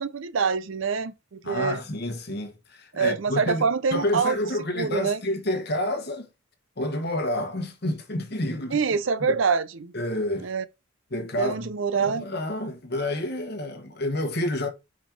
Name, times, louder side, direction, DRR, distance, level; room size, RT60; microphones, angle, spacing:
voice 1, 0.0-1.8 2.9-4.4 4.8-5.2 8.7-9.9 10.4-10.6 11.4-12.2, right 5 dB, 65° right, 0.5 m, -25 dB
voice 2, 1.4-6.3 6.8-8.8 9.2-9.4 9.9-10.5 11.1-14.7, left 1 dB, 50° left, 1.2 m, -29 dB
5.2 x 4.1 x 4.4 m
head